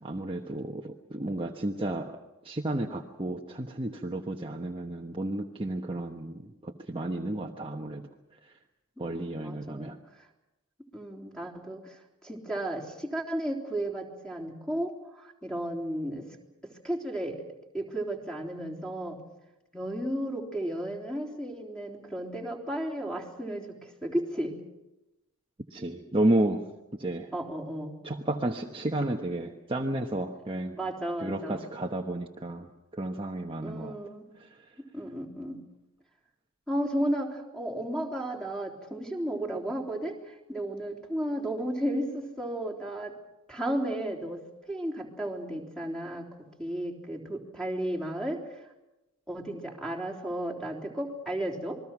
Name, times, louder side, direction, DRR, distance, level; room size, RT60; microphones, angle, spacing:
voice 1, 0.0-2.2 2.4-8.0 9.0-10.0 25.7-26.6 27.0-27.3 28.0-30.8 31.2-33.9, right 1 dB, 25° right, 1 dB, 1.2 m, -32 dB
voice 2, 9.4-10.0 10.9-16.3 16.6-17.4 17.7-19.2 19.7-24.6 27.3-28.0 30.7-31.6 33.6-34.3 34.8-35.6 36.7-43.1 43.5-44.4 44.7-48.4 49.3-51.8, right 1 dB, 5° left, 1 dB, 3.6 m, -33 dB
28.0 x 21.5 x 6.1 m, 0.95 s
head